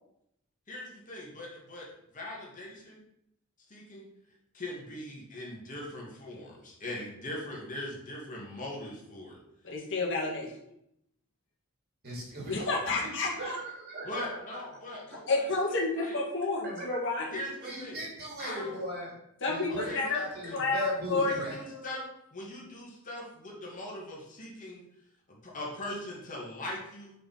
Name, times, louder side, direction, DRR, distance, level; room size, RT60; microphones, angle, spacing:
voice 1, 0.7-1.9 2.1-3.0 3.7-4.1 4.5-9.4 9.6-9.7 14.0-16.2 17.3-18.0 18.4-18.8 19.7-20.6 21.1-22.0 22.3-24.8 25.3-27.1, left 1 dB, 35° left, -3 dB, 2.0 m, -41 dB
voice 2, 9.6-10.5 12.5-13.6 15.3-17.4 19.4-20.2 20.5-20.8 21.1-21.3 21.7-22.0, left 3 dB, 55° left, -3 dB, 1.8 m, -30 dB
voice 3, 12.0-14.6 14.9-15.0 16.6-17.0 17.6-19.1 19.5-21.6, equal, 45° right, -4 dB, 3.0 m, -38 dB
5.6 x 5.0 x 5.7 m, 0.78 s
head